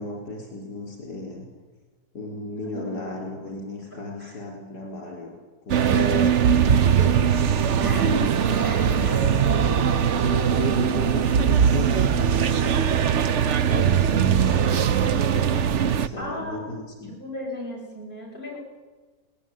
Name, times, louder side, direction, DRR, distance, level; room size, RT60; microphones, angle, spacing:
voice 1, 0.0-1.5 2.1-5.3 5.7-7.4 8.4-9.1 9.4-13.0 13.7-17.1, left 1 dB, 75° left, -1 dB, 5.0 m, -34 dB
voice 2, 2.7-3.1 4.2-4.3 5.9-6.3 7.8-9.5 16.2-16.7 17.2-18.6, equal, 30° left, -3 dB, 8.1 m, -32 dB
sound 1, 5.7-16.1, right 8 dB, 55° right, 1.0 m, -21 dB
20.5 x 18.5 x 9.5 m, 1.3 s
omnidirectional pair, 1.7 m